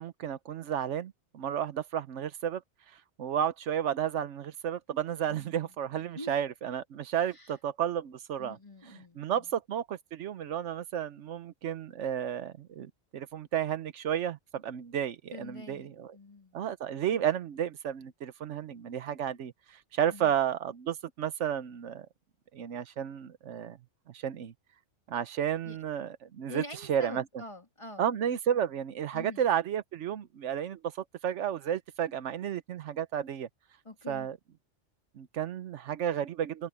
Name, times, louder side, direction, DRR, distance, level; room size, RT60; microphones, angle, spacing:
voice 1, 0.0-2.6 3.2-8.6 9.2-16.1 16.5-22.1 22.5-23.8 24.1-24.5 25.1-26.6 26.9-27.2 28.0-33.5 34.1-34.4 35.2-36.7, right 9 dB, 85° right, 1.1 m, -32 dB
voice 2, 5.3-5.7 6.1-6.3 7.3-7.5 8.4-9.5 15.3-16.6 20.1-20.3 25.6-25.8 26.5-28.1 29.1-29.5 33.8-34.3, left 2 dB, 25° left, 2.9 m, -45 dB
omnidirectional pair, 1.2 m